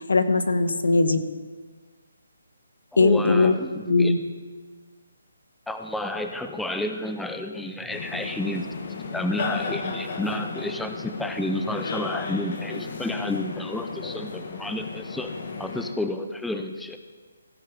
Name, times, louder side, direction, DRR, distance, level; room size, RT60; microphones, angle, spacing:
voice 1, 0.1-1.2 3.0-3.6 3.9-4.2, left 3 dB, 80° left, 10 dB, 1.0 m, -19 dB
voice 2, 2.9-4.1 5.7-8.7 9.1-15.3 15.6-17.0, left 1 dB, ahead, 6 dB, 0.4 m, -31 dB
sound 1, 7.9-15.9, left 4 dB, 45° left, 1.3 m, -34 dB
16.0 x 5.5 x 5.7 m, 1.4 s
hypercardioid pair, 165°, 0 cm